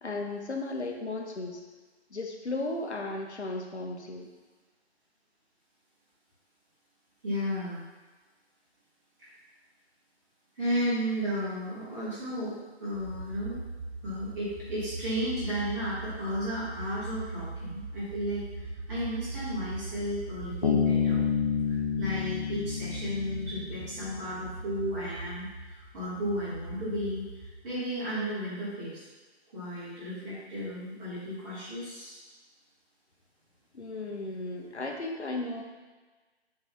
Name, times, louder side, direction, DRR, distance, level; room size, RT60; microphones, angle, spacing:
voice 1, 0.0-1.6 2.1-4.3 33.7-35.6, left 2 dB, 85° left, 2 dB, 0.8 m, -35 dB
voice 2, 7.2-7.8 9.2-9.3 10.5-13.6 14.0-21.3 21.7-29.0 29.5-32.2, equal, 15° right, -9 dB, 1.3 m, -34 dB
sound 1, 12.9-27.6, right 3 dB, 45° right, 1.2 m, -40 dB
Bass guitar, 20.6-24.2, left 7 dB, 40° left, 0.5 m, -29 dB
6.6 x 2.4 x 3.1 m, 1.3 s
figure-of-eight pair, 140°, 33 cm